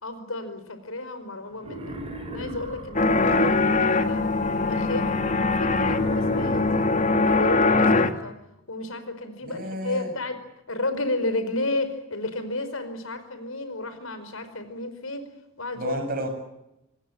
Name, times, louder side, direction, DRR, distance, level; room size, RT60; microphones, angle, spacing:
voice 1, 0.0-2.0 2.3-4.2 4.6-6.9 7.3-8.3 8.7-10.4 10.7-15.3 15.6-16.0, left 2 dB, 85° left, 10 dB, 5.1 m, -32 dB
Wild animals, 1.6-4.1 5.6-8.1, right 1 dB, 30° right, 6.2 m, -37 dB
sound 1, 2.9-8.1, left 3 dB, 40° left, 1.7 m, -22 dB
voice 2, 3.1-3.7 9.4-10.1 15.8-16.3, right 1 dB, 45° right, 6 dB, 7.4 m, -32 dB
25.5 x 20.0 x 8.8 m, 0.88 s
head